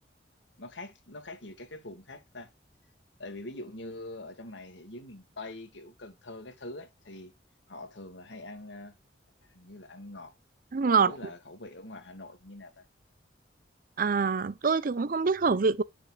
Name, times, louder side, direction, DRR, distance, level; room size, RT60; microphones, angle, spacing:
voice 1, 0.6-2.5 3.2-7.3 7.7-9.0 9.5-10.3 10.9-12.8, left 2 dB, 80° left, 1.9 m, -44 dB
voice 2, 10.7-11.2 14.0-15.8, right 5 dB, 50° right, 0.5 m, -25 dB
7.8 x 7.2 x 2.3 m
head